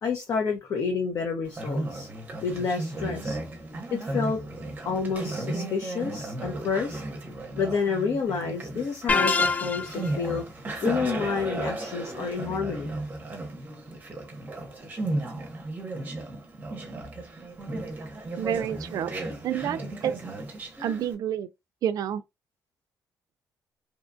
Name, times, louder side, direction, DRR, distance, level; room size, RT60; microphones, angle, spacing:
voice 1, 0.0-2.1 2.4-3.4 3.9-4.4 4.8-7.0 7.6-10.4 10.8-12.9, left 5 dB, 55° left, 0.6 m, -29 dB
Conversation, 1.5-21.2, right 2 dB, 25° right, 0.7 m, -35 dB
sound 1, 9.1-10.1, left 4 dB, 25° left, 0.3 m, -24 dB
voice 2, 18.4-19.1 19.4-20.1 20.8-21.5 21.8-22.2, right 9 dB, 70° right, 0.3 m, -29 dB
2.8 x 2.2 x 2.5 m
cardioid pair, 120°, 7 cm